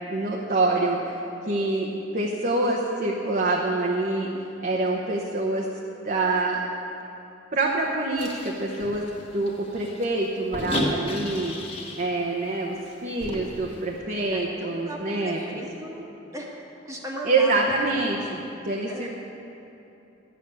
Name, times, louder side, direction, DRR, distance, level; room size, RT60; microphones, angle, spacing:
voice 1, 0.1-4.3 4.6-5.7 6.0-6.6 7.5-9.0 9.3-11.5 12.0-12.8 13.0-15.6 17.2-19.1, right 2 dB, 45° right, -2 dB, 0.9 m, -26 dB
sound 1, 8.2-12.1 12.4-12.5 12.8-13.9, equal, 30° left, 1.7 m, -33 dB
voice 2, 14.3-16.5 16.8-17.9 18.9-19.1, equal, 15° right, -2 dB, 1.4 m, -37 dB
11.0 x 7.7 x 8.2 m, 2.9 s
head